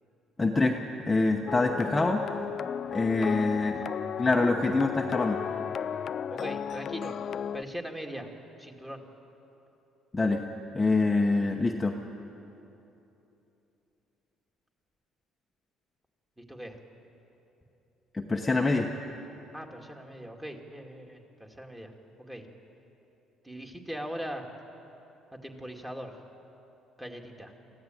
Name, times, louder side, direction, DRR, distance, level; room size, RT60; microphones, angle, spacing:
voice 1, 0.4-0.8 1.1-2.4 2.9-3.8 4.2-5.4 10.1-10.4 10.7-12.0 18.1-18.9, left 3 dB, 15° left, 1 dB, 1.1 m, -25 dB
sound 1, 1.5-7.6, left 8 dB, 45° left, 0.4 m, -34 dB
voice 2, 3.5-3.9 6.3-7.2 7.5-8.3 8.6-9.0 16.4-16.8 19.5-21.9 22.3-22.5 23.4-24.5 25.4-26.2 27.0-27.5, equal, 10° right, 2 dB, 2.2 m, -40 dB
23.5 x 15.0 x 9.2 m, 3.0 s
cardioid pair, 120°, 0 cm